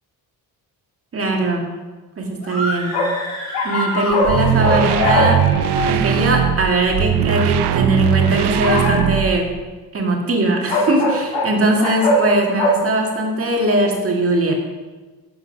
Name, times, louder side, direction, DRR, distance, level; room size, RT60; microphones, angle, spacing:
voice 1, 1.1-1.7 2.2-3.0 3.6-5.5 5.9-9.5 9.9-14.5, right 2 dB, 35° right, 1 dB, 1.9 m, -20 dB
sound 1, 2.4-5.0, equal, 40° left, 3.1 m, -28 dB
sound 2, 2.9-4.4 4.6-6.1 8.5-9.2 10.7-11.5 11.8-12.2 12.6-12.7, left 2 dB, 85° left, 2.1 m, -20 dB
sound 3, 4.1-9.6, right 10 dB, 85° right, 0.7 m, -19 dB
11.5 x 7.6 x 5.4 m, 1.3 s
cardioid pair, 145°, 40 cm